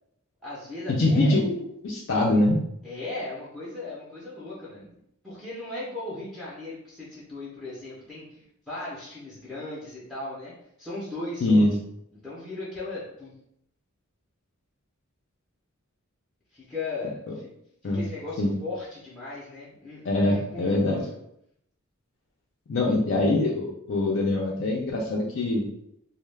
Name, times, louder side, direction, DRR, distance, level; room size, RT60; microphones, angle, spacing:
voice 1, 0.4-1.4 2.8-5.0 5.2-10.5 10.8-11.6 12.2-13.3 16.5-17.5 17.8-21.0, left 2 dB, ahead, -8 dB, 0.5 m, -37 dB
voice 2, 1.0-2.6 11.4-11.7 17.8-18.0 18.4-18.5 20.0-21.0 22.7-25.6, left 2 dB, 60° left, -3 dB, 0.4 m, -23 dB
2.2 x 2.1 x 3.2 m, 0.75 s
head